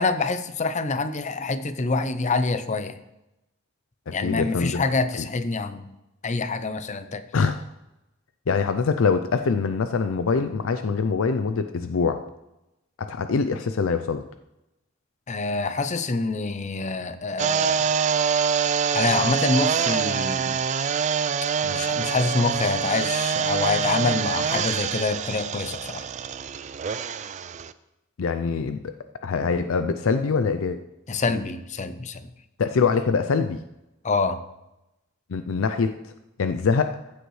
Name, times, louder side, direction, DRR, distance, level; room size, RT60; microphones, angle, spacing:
voice 1, 0.0-3.0 4.1-5.9 6.2-7.2 15.3-17.9 18.9-20.6 21.6-26.1 31.1-32.2 34.0-34.4, left 3 dB, 35° left, 11 dB, 0.6 m, -26 dB
voice 2, 4.1-4.8 5.2-5.3 7.3-7.5 8.5-12.2 13.0-14.2 28.2-28.9 29.2-30.8 32.6-33.6 35.3-36.1 36.4-37.0, left 5 dB, 80° left, 9 dB, 0.5 m, -24 dB
sound 1, 17.4-27.7, right 7 dB, 35° right, 0.4 m, -25 dB
15.0 x 8.0 x 3.2 m, 0.92 s
head